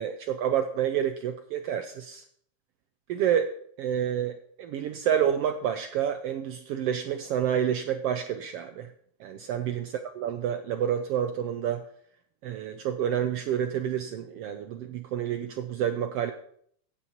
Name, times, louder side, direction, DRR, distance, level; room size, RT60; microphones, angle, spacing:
voice 1, 0.0-2.2 3.1-3.5 3.8-8.9 9.2-11.8 12.4-16.3, right 9 dB, 80° right, 8 dB, 1.4 m, -29 dB
16.0 x 8.5 x 3.0 m, 0.63 s
omnidirectional pair, 3.3 m